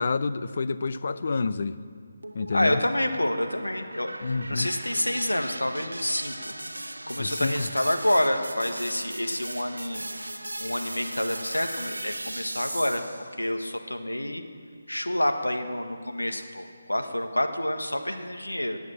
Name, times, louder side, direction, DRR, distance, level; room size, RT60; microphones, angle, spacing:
voice 1, 0.0-1.7 2.3-2.8 4.2-4.7 7.2-7.7, left 4 dB, 50° left, 13 dB, 0.6 m, -28 dB
sound 1, 2.2-13.3, right 1 dB, 80° right, 1.0 m, -38 dB
voice 2, 2.5-6.5 7.1-10.1 10.6-14.4 14.9-18.8, left 1 dB, 85° left, 6 dB, 1.4 m, -28 dB
18.5 x 8.1 x 7.3 m, 2.1 s
figure-of-eight pair, 150°, 0 cm